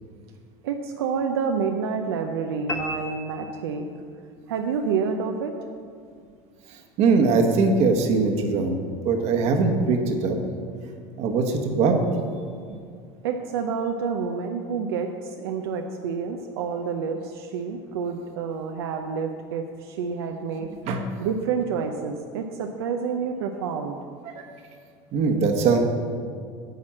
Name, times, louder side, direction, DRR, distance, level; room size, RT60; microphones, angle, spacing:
voice 1, 0.6-3.8 4.5-5.5 13.2-20.7 21.2-24.0, right 6 dB, 90° right, 4 dB, 0.5 m, -28 dB
sound 1, 2.7-4.2, left 1 dB, 20° left, 0.8 m, -34 dB
voice 2, 7.0-8.8 9.0-10.4 11.2-12.0 20.9-21.0 24.3-24.4 25.1-25.8, right 4 dB, 60° right, 4 dB, 1.2 m, -21 dB
9.1 x 4.3 x 7.4 m, 2.2 s
supercardioid pair, 105°, 13 cm